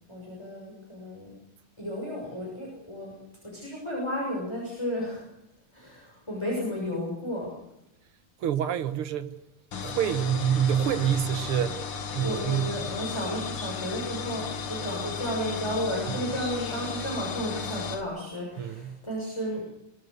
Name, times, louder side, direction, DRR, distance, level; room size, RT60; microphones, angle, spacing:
voice 1, 0.1-1.3 1.8-3.1 3.4-5.2 5.7-7.5 12.2-19.6, equal, 10° left, 6.7 m, -33 dB
voice 2, 8.4-9.3 9.8-11.8 12.1-12.7 18.6-18.9, right 9 dB, 85° right, 2.1 m, -26 dB
sound 1, 9.7-18.0, left 5 dB, 85° left, 2.5 m, -35 dB
24.0 x 19.0 x 6.7 m
omnidirectional pair, 2.3 m